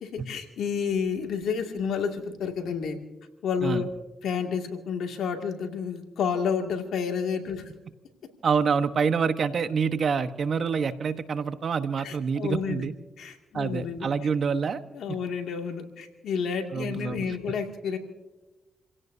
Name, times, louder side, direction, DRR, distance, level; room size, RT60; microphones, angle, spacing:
voice 1, 0.0-3.0 3.4-3.9 4.2-7.7 12.0-12.9 13.2-14.1 14.9-18.0, left 6 dB, 80° left, 3 dB, 2.3 m, -30 dB
voice 2, 8.4-12.9 13.5-14.8 16.7-17.3, right 6 dB, 65° right, 10 dB, 1.1 m, -26 dB
29.0 x 16.5 x 2.7 m, 1.1 s
supercardioid pair, 45°, 0 cm